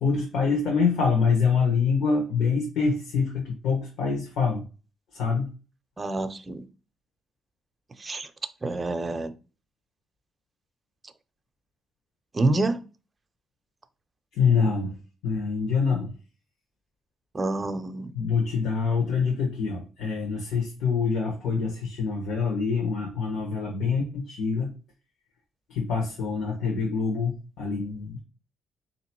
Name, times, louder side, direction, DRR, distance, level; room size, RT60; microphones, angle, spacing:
voice 1, 0.0-4.6 5.1-5.5 14.3-15.0 15.2-16.1 18.1-24.7 25.7-28.2, left 5 dB, 80° left, 1.2 m, -25 dB
voice 2, 6.0-6.7 8.0-8.3 8.6-9.3 12.3-12.8 17.3-18.1, right 2 dB, 25° right, 0.5 m, -27 dB
3.5 x 2.9 x 4.5 m
cardioid pair, 90°, 0 cm